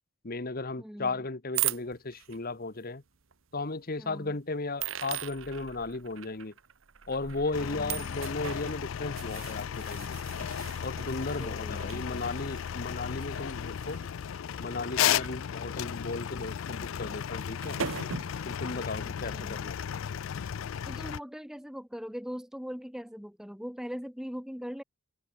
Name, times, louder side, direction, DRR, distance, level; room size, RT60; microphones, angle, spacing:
voice 1, 0.2-3.0 3.5-6.5 7.1-10.2 10.8-14.0 14.6-17.8 18.4-19.8, left 3 dB, 45° left, 1.4 m, -35 dB
voice 2, 0.8-1.2 4.0-4.4 7.5-8.2 11.3-12.4 19.0-19.6 20.8-24.8, equal, 5° right, 1.1 m, -41 dB
sound 1, 1.5-2.4 3.3-3.4 4.8-15.3 15.8-15.9 17.2-17.3 17.6-18.5, right 10 dB, 65° right, 1.3 m, -39 dB
sound 2, 7.5-21.2, left 9 dB, 65° left, 0.4 m, -34 dB
head